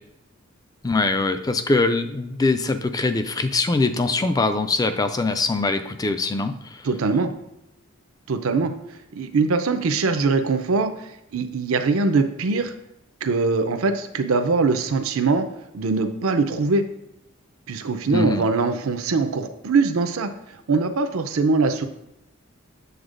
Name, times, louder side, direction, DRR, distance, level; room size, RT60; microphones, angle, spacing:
voice 1, 0.8-6.8 18.1-18.4, left 3 dB, 15° left, 9 dB, 0.3 m, -22 dB
voice 2, 6.8-7.3 8.3-8.7 9.1-12.7 13.2-15.5 15.7-16.8 17.7-21.8, right 4 dB, 85° right, 7 dB, 0.5 m, -22 dB
8.0 x 7.0 x 2.5 m, 0.84 s
head